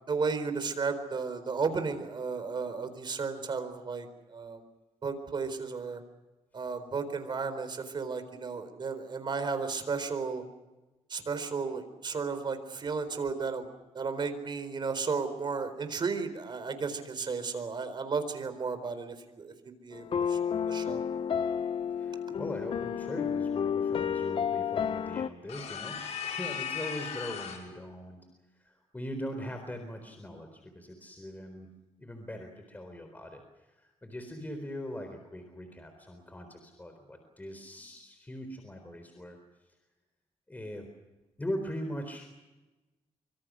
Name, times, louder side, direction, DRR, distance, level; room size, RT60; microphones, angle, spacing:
voice 1, 0.1-4.6 5.0-6.0 6.5-10.4 11.1-13.7 13.9-20.4 20.7-21.0, right 5 dB, 45° right, 10 dB, 4.1 m, -34 dB
sound 1, 19.9-25.3, left 7 dB, 50° left, 0.8 m, -31 dB
voice 2, 21.9-28.3 28.5-31.7 32.0-39.4 40.5-40.9 41.4-42.3, equal, 15° left, 6 dB, 4.0 m, -41 dB
sound 2, 25.5-27.7, left 8 dB, 90° left, 5.8 m, -37 dB
25.5 x 25.0 x 6.3 m, 1.1 s
cardioid pair, 110°, 11 cm